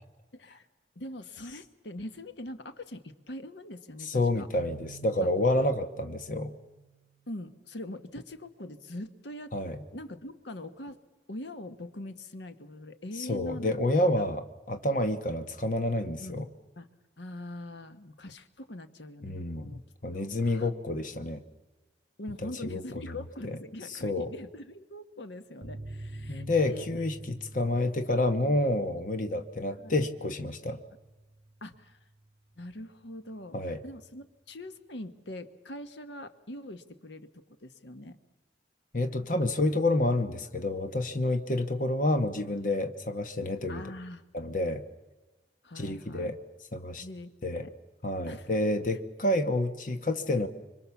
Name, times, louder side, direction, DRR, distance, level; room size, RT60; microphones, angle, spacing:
voice 1, 0.3-0.7 0.9-4.5 7.3-9.5 9.9-11.0 11.3-13.9 14.2-14.3 16.2-16.4 16.8-16.9 17.2-19.8 20.1-20.7 22.2-26.9 29.8-29.9 31.6-32.0 32.6-38.2 43.7-44.2 45.6-46.3 47.0-47.7 48.3-48.5, left 1 dB, 80° left, 10 dB, 1.3 m, -43 dB
voice 2, 4.0-6.5 9.5-9.8 13.2-16.5 19.2-21.4 22.4-22.8 23.4-23.5 24.0-24.3 26.3-30.8 33.5-33.8 38.9-43.8 44.3-44.8 45.8-46.4 46.7-47.0 47.4-47.6 48.0-50.5, left 1 dB, 45° left, 8 dB, 1.2 m, -29 dB
Keyboard (musical), 4.5-7.4, right 10 dB, 85° right, 0.8 m, -52 dB
sound 1, 25.6-32.7 33.0-33.1 33.4-33.5, right 1 dB, 35° right, 4.5 m, -47 dB
26.0 x 24.5 x 7.1 m, 1.2 s
head